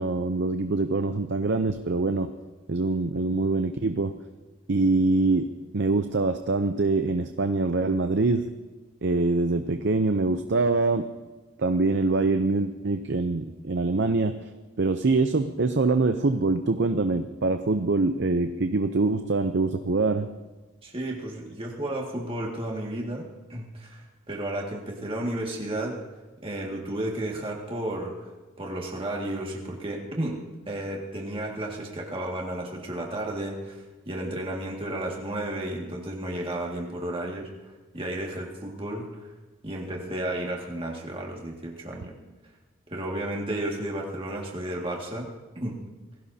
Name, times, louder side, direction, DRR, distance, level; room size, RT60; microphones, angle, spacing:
voice 1, 0.0-2.3 2.7-4.2 4.7-8.5 9.0-11.1 11.6-14.3 14.8-20.3, right 3 dB, 60° right, 8 dB, 0.6 m, -24 dB
voice 2, 20.8-26.0 26.4-28.1 28.6-30.4 30.7-37.5 37.9-39.0 39.6-42.1 42.9-45.3 45.6-45.8, right 1 dB, 25° right, -1 dB, 2.0 m, -32 dB
26.5 x 17.0 x 2.8 m, 1.2 s
head